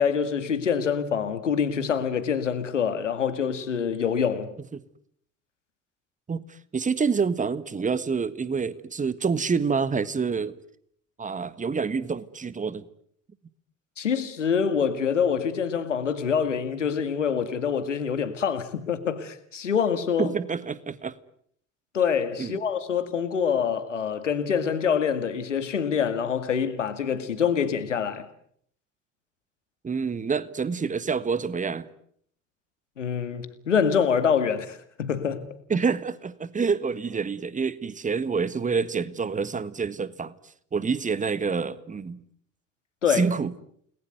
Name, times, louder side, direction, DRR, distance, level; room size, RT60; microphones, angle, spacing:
voice 1, 0.0-4.5 14.0-20.3 21.9-28.3 33.0-35.5 43.0-43.3, left 7 dB, 80° left, 2.2 m, -25 dB
voice 2, 6.3-10.6 11.2-12.8 20.2-21.1 22.4-22.5 29.8-31.9 35.7-40.3 40.7-42.2 43.1-43.5, right 5 dB, 20° right, 1.6 m, -27 dB
29.5 x 20.5 x 9.3 m
figure-of-eight pair, 60°, 36 cm